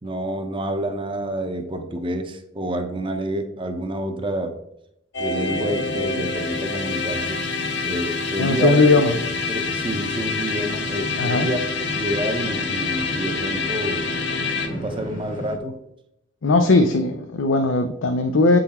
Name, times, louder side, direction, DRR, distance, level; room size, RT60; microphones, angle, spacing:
voice 1, 0.0-4.6 5.2-7.4 7.8-9.0 9.5-14.1 14.7-15.8, right 1 dB, 25° right, 6 dB, 0.7 m, -28 dB
sound 1, 5.1-14.7, left 4 dB, 60° left, 0.9 m, -27 dB
sound 2, 5.4-15.6, right 1 dB, 45° left, 1.0 m, -36 dB
voice 2, 8.4-9.2 11.2-11.5 16.4-18.6, left 3 dB, 85° left, 6 dB, 0.5 m, -18 dB
7.8 x 3.9 x 4.2 m, 0.80 s
head